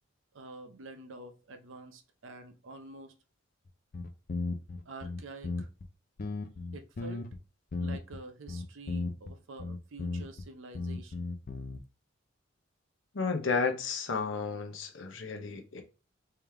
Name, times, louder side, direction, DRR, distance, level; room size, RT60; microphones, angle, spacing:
voice 1, 0.3-3.1 4.9-5.7 6.7-7.3 7.8-11.3, right 2 dB, 70° right, 0.6 m, -47 dB
sound 1, 3.7-3.8 3.9-5.9 6.2-7.4 7.7-8.2 8.5-9.3 9.6-10.5 10.7-11.8, left 3 dB, 45° left, 0.4 m, -35 dB
voice 2, 13.1-15.8, left 4 dB, 65° left, 0.8 m, -32 dB
3.4 x 3.2 x 3.4 m
head